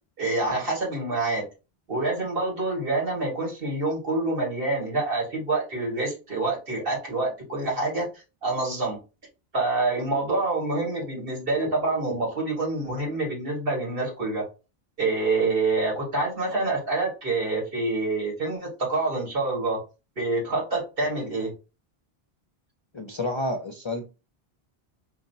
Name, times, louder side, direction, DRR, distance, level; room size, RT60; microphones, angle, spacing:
voice 1, 0.2-1.4 1.9-8.1 8.4-9.0 9.5-14.4 15.0-19.8 20.2-21.5, right 2 dB, 60° right, -2 dB, 1.9 m, -26 dB
voice 2, 22.9-24.0, left 1 dB, 45° left, 4 dB, 0.4 m, -29 dB
4.6 x 2.8 x 2.7 m, 0.30 s
omnidirectional pair, 1.1 m